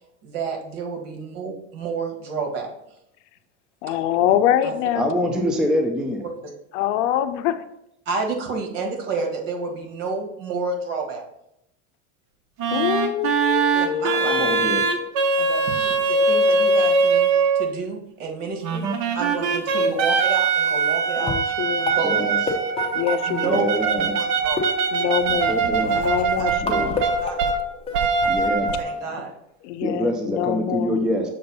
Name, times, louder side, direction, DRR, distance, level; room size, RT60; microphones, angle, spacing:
voice 1, 0.2-2.7 4.6-4.7 6.4-6.5 8.0-11.2 13.7-14.4 15.4-17.3 17.5-18.9 19.1-21.3 21.8-22.4 23.3-24.7 25.9-26.0 26.4-26.5 27.0-27.3 28.8-29.4, right 4 dB, 70° right, 3 dB, 1.6 m, -30 dB
voice 2, 3.8-5.1 6.7-7.6 12.7-15.1 19.8-20.1 21.2-22.0 22.9-23.6 24.9-25.6 25.9-27.1 29.6-31.0, left 10 dB, 65° left, 11 dB, 0.6 m, -25 dB
voice 3, 5.0-6.2 14.2-14.9 22.0-22.4 23.4-24.3 25.5-25.9 26.6-27.0 28.2-28.7 29.8-31.3, equal, ahead, 3 dB, 0.4 m, -25 dB
sound 1, 12.6-17.7 18.6-27.6 27.9-29.0, right 4 dB, 45° right, 0.7 m, -22 dB
sound 2, 20.6-20.9 21.3-24.0 24.6-25.7 26.7-28.0, left 4 dB, 15° left, 0.8 m, -31 dB
Writing, 23.8-23.9 24.4-28.8, right 6 dB, 85° right, 0.6 m, -35 dB
6.7 x 2.6 x 5.4 m, 0.80 s
supercardioid pair, 135°, 38 cm